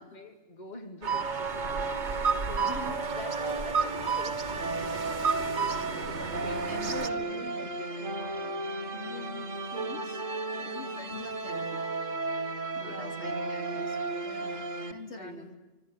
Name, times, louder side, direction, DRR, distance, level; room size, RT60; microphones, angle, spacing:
voice 1, 0.0-8.1 10.8-11.1 12.8-13.2 15.1-15.6, left 2 dB, 35° left, 4 dB, 2.5 m, -47 dB
sound 1, 1.0-7.1, right 5 dB, 65° right, 1.9 m, -32 dB
sound 2, 1.1-14.9, right 3 dB, 90° right, 2.3 m, -34 dB
voice 2, 2.4-3.0 5.9-6.1 6.5-10.2 10.5-11.9 12.2-12.5 12.8-15.5, left 3 dB, 60° left, 3 dB, 3.8 m, -45 dB
25.5 x 24.5 x 9.1 m, 1.1 s
omnidirectional pair, 1.3 m